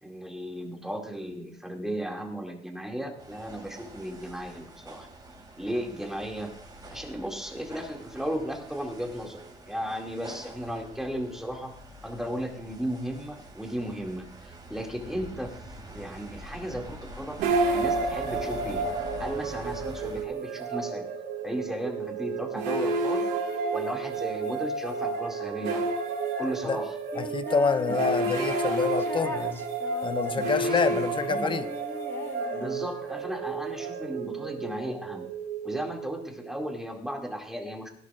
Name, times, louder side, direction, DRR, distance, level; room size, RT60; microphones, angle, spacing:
voice 1, 0.0-5.1 5.6-6.5 6.9-11.8 12.0-17.4 17.7-18.9 19.2-21.0 21.4-23.3 23.7-25.8 26.4-27.0 30.6-31.0 31.3-31.5 32.5-35.2 35.6-37.9, equal, ahead, 1 dB, 2.3 m, -35 dB
sound 1, 3.2-20.2, right 1 dB, 25° right, 2.5 m, -45 dB
sound 2, 17.4-36.5, right 3 dB, 85° right, 2.0 m, -31 dB
voice 2, 27.1-29.6 30.0-31.7, left 5 dB, 30° left, 11 dB, 0.7 m, -27 dB
sound 3, 27.1-28.0 28.2-32.9, left 1 dB, 15° left, 1.3 m, -39 dB
18.0 x 11.0 x 2.5 m, 0.62 s
cardioid pair, 110°, 17 cm